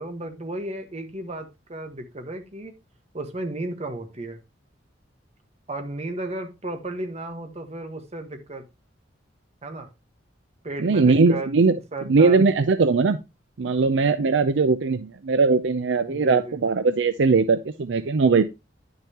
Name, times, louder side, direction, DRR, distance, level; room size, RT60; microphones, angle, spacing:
voice 1, 0.0-2.7 3.1-4.4 5.7-8.6 9.6-9.9 10.6-11.6 11.9-12.5 16.1-16.6, right 2 dB, 35° right, 6 dB, 1.4 m, -34 dB
voice 2, 10.8-11.8 12.1-13.2 13.6-18.4, right 4 dB, 70° right, 11 dB, 0.5 m, -20 dB
10.0 x 6.7 x 2.9 m, 0.24 s
head